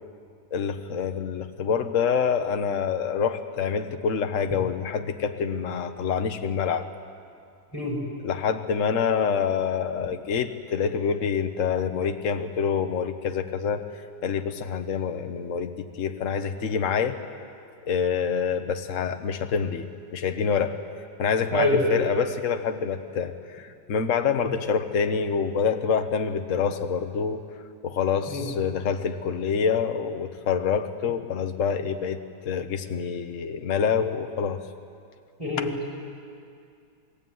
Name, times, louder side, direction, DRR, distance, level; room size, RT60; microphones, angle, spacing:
voice 1, 0.5-6.9 8.2-13.8 14.2-17.2 17.9-19.9 20.1-20.8 21.2-27.4 27.8-34.6 35.6-35.7, left 6 dB, 50° left, 7 dB, 1.4 m, -26 dB
voice 2, 21.5-21.9 24.3-24.5 28.3-28.4 35.4-35.7, left 1 dB, 15° left, -3 dB, 6.1 m, -25 dB
28.0 x 20.5 x 9.4 m, 2.3 s
omnidirectional pair, 1.9 m